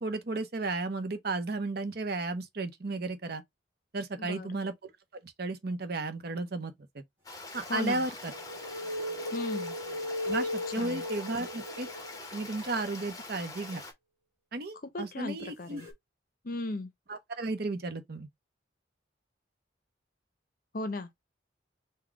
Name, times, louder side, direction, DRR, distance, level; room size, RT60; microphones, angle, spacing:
voice 1, 0.0-3.4 3.9-4.7 5.1-7.0 7.5-8.3 10.2-11.9 12.3-13.8 14.5-15.8 17.1-18.3, right 3 dB, 55° right, 0.7 m, -34 dB
voice 2, 4.2-4.6 7.7-8.0 9.3-9.8 10.7-11.0 14.9-15.9 16.4-16.9 20.7-21.1, left 2 dB, 45° left, 0.6 m, -36 dB
Stream, 7.2-13.9, left 2 dB, 20° left, 0.9 m, -44 dB
sound 1, 8.0-12.5 15.8-15.9, left 1 dB, 15° right, 1.8 m, -37 dB
4.0 x 2.2 x 4.5 m
head